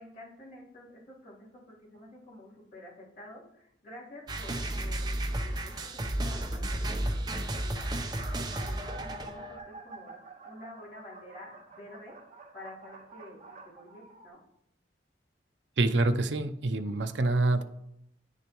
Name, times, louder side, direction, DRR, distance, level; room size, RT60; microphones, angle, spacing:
voice 1, 0.0-7.9 8.3-12.2 12.5-14.4, left 1 dB, 45° left, -8 dB, 3.2 m, -49 dB
sound 1, 4.3-9.6, right 1 dB, 20° right, 0.7 m, -33 dB
sound 2, 6.1-6.4 7.2-7.3 7.5-7.6 7.9-14.3, right 3 dB, 40° right, 1.3 m, -48 dB
voice 2, 15.8-17.6, right 2 dB, 75° right, 9 dB, 0.6 m, -26 dB
9.4 x 6.6 x 3.0 m, 0.77 s
head